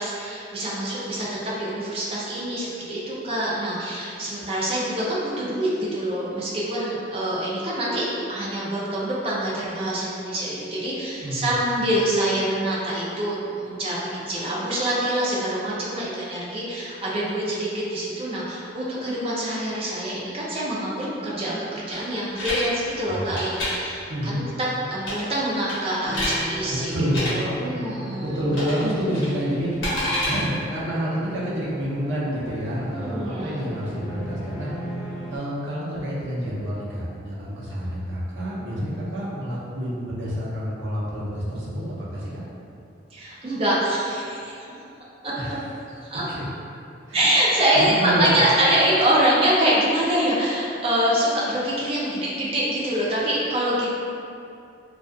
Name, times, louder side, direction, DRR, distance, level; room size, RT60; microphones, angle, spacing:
voice 1, 0.0-24.4 24.9-26.9 27.3-28.4 32.9-33.6 43.1-44.7 45.2-45.3 46.1-46.2 47.1-53.9, right 1 dB, 30° right, -6 dB, 0.4 m, -25 dB
voice 2, 11.2-11.5 23.1-23.4 24.1-24.4 26.7-27.4 28.2-29.8 30.3-34.7 35.3-42.4 45.4-45.5 45.9-46.0 46.3-46.4 47.1-47.3 47.7-48.5, equal, 70° right, -8 dB, 0.6 m, -28 dB
sound 1, 21.9-22.7 23.2-23.7 25.0-25.4 25.7-26.4 27.0-27.3 28.5-28.8 29.1-30.3, left 1 dB, 75° left, 0.9 m, -28 dB
sound 2, 26.0-35.4, equal, 20° left, 0.8 m, -37 dB
2.4 x 2.4 x 2.3 m, 2.6 s
head